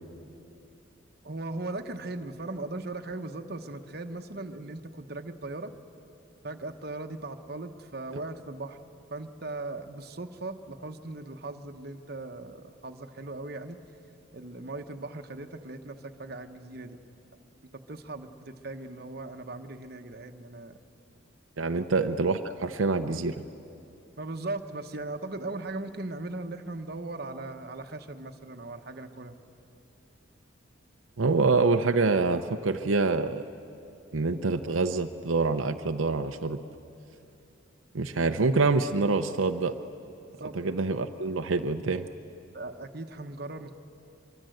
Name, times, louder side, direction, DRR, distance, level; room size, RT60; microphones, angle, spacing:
voice 1, 1.2-5.7 6.4-8.8 9.1-13.8 14.3-17.0 17.7-20.8 21.7-21.8 24.2-29.4 40.4-40.6 42.5-43.8, right 2 dB, 50° right, 6 dB, 1.1 m, -38 dB
voice 2, 21.6-23.3 31.2-33.5 34.1-36.6 37.9-39.7 40.5-42.1, right 3 dB, 85° right, 6 dB, 0.7 m, -26 dB
24.0 x 23.5 x 7.9 m, 2.8 s
head